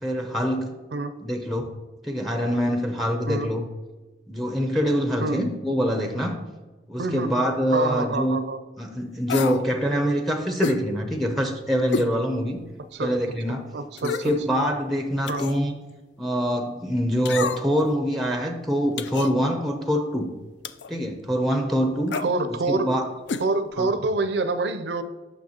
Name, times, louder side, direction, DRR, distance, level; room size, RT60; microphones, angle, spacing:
voice 1, 0.0-0.7 1.2-1.7 2.0-3.6 4.3-6.4 6.9-8.4 8.8-12.6 13.0-13.6 14.0-15.7 16.2-20.3 20.9-22.2 22.5-23.0 23.8-23.9, equal, ahead, 4 dB, 0.5 m, -25 dB
voice 2, 7.0-8.6 12.9-13.1 13.7-14.3 15.3-15.4 22.2-22.9 23.4-25.0, right 3 dB, 65° right, 10 dB, 0.5 m, -26 dB
sound 1, 9.3-9.6 10.6-10.8 11.9-12.1 12.6-12.7 14.0-14.4 15.3-15.6 17.3-17.8 19.0-19.3 20.6-20.9 22.1-22.3 23.3-23.5 23.7-23.8, left 5 dB, 70° left, 0.4 m, -29 dB
8.9 x 6.2 x 2.8 m, 1.2 s
head